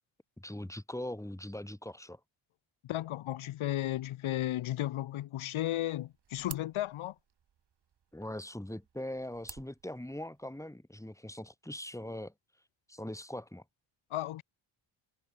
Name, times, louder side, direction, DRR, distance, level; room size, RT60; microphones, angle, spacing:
voice 1, 0.4-2.2 8.1-12.3 12.9-13.6, left 1 dB, 5° left, 7.0 m, -41 dB
voice 2, 2.8-7.1 14.1-14.4, left 14 dB, 80° left, 1.3 m, -34 dB
sound 1, 5.7-10.7, right 8 dB, 55° right, 3.0 m, -53 dB
cardioid pair, 80°, 48 cm